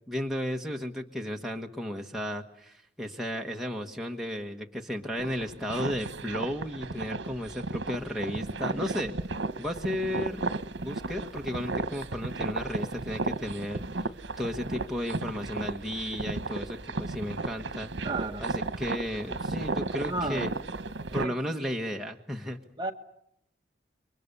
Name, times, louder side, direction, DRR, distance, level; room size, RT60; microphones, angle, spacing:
voice 1, 0.1-9.2 9.6-10.4 10.8-14.1 14.4-17.9 18.4-20.5 21.1-22.6, left 1 dB, ahead, 0 dB, 1.4 m, -34 dB
sound 1, 5.2-21.3, right 3 dB, 80° right, 1.2 m, -34 dB
voice 2, 18.0-18.5 20.0-20.5 21.1-21.6 22.8-22.9, right 2 dB, 25° right, 4 dB, 1.5 m, -33 dB
29.0 x 23.5 x 6.9 m, 0.74 s
head